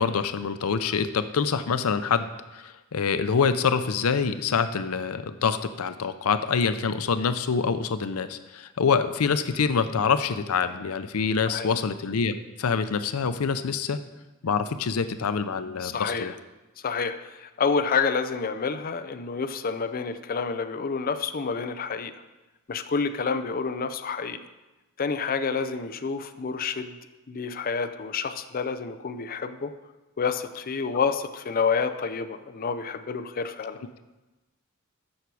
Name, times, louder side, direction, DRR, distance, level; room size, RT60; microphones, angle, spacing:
voice 1, 0.0-14.0 14.4-16.3, left 5 dB, 90° left, 11 dB, 0.6 m, -26 dB
voice 2, 15.8-16.3 16.8-22.1 22.7-24.4 25.0-26.9 27.3-29.7 30.2-33.8, left 5 dB, 45° left, 9 dB, 0.5 m, -28 dB
13.5 x 6.1 x 4.7 m, 1.1 s
head